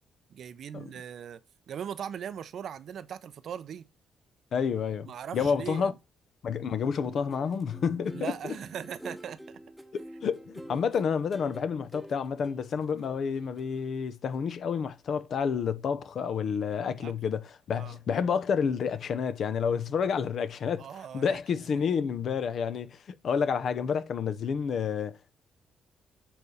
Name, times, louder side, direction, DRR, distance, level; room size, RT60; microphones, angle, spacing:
voice 1, 0.3-1.4 1.7-3.9 5.1-6.0 8.1-9.6 16.9-17.1 17.8-18.0 20.8-21.7, right 8 dB, 65° right, 0.6 m, -39 dB
voice 2, 4.5-5.1 5.3-5.9 6.4-8.5 9.9-23.0 23.2-25.3, left 6 dB, 60° left, 0.8 m, -29 dB
sound 1, 6.8-14.0 14.3-14.5, equal, 5° right, 0.9 m, -48 dB
7.3 x 3.4 x 5.4 m
cardioid pair, 90°, 0 cm